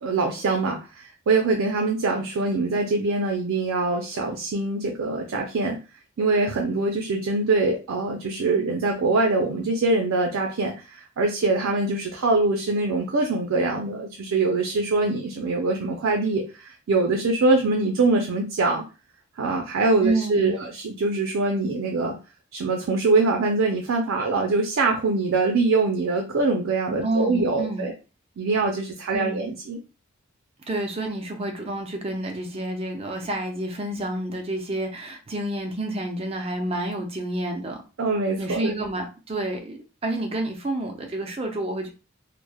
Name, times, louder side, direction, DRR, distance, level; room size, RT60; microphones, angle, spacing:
voice 1, 0.0-5.8 6.2-18.8 19.4-22.1 22.5-27.9 28.4-29.8 38.0-38.7, right 3 dB, 85° right, 2 dB, 0.4 m, -23 dB
voice 2, 20.0-20.7 27.0-27.9 29.1-29.5 30.7-37.8 38.4-41.9, right 1 dB, 30° right, 3 dB, 0.4 m, -29 dB
3.0 x 2.0 x 2.2 m, 0.31 s
head